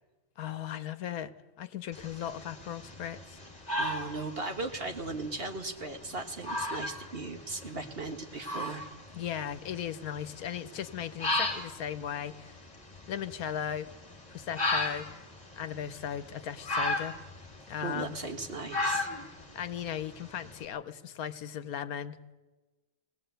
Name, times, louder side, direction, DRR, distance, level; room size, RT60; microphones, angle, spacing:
voice 1, 0.4-1.3 1.6-3.4 9.1-12.5 13.1-13.9 14.3-15.1 15.6-17.1 17.7-18.2 19.5-22.2, left 9 dB, 80° left, 12 dB, 1.3 m, -37 dB
sound 1, 1.9-20.6, left 2 dB, 25° left, 2.5 m, -37 dB
voice 2, 3.8-8.8 17.8-19.1, right 3 dB, 40° right, 5 dB, 1.6 m, -37 dB
19.5 x 17.5 x 8.0 m, 1.2 s
omnidirectional pair, 1.5 m